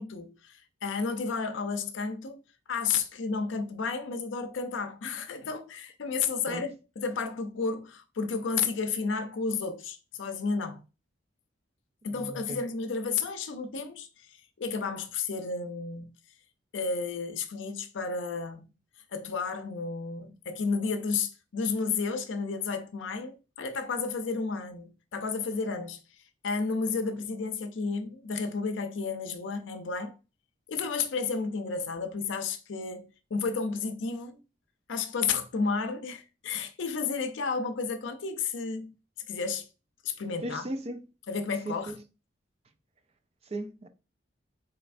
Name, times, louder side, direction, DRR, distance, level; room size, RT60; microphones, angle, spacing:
voice 1, 0.0-2.4 2.7-10.8 12.0-16.1 16.7-18.7 19.1-26.2 26.4-30.1 30.7-34.4 34.9-38.9 39.3-39.7 40.0-40.7 41.3-41.9, left 4 dB, 75° left, 0.5 m, -32 dB
voice 2, 12.2-12.6 40.4-41.0 41.7-42.0 43.5-43.9, right 1 dB, 30° right, 0.4 m, -36 dB
4.0 x 3.2 x 2.5 m
head